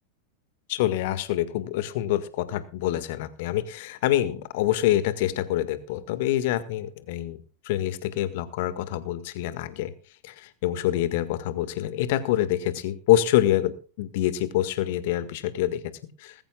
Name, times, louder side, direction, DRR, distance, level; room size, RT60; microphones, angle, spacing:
voice 1, 0.7-7.4 7.7-9.9 10.2-15.8 16.2-16.3, left 13 dB, 50° left, 14 dB, 1.7 m, -26 dB
20.0 x 15.0 x 2.3 m, 0.37 s
figure-of-eight pair, 90°, 0 cm